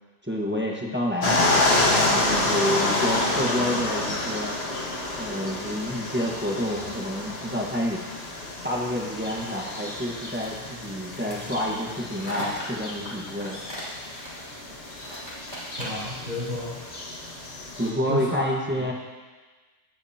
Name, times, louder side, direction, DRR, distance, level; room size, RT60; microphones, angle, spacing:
voice 1, 0.2-1.5 2.0-4.5 5.1-8.0 8.6-13.6 17.8-18.9, equal, 10° right, -2 dB, 1.2 m, -29 dB
sound 1, 1.2-17.9, left 2 dB, 50° left, 1.7 m, -28 dB
sound 2, 10.3-16.2, equal, 35° left, 3.4 m, -39 dB
voice 2, 15.8-16.7 18.1-18.9, left 2 dB, 65° right, -13 dB, 3.6 m, -32 dB
17.0 x 9.2 x 2.9 m, 1.3 s
omnidirectional pair, 1.5 m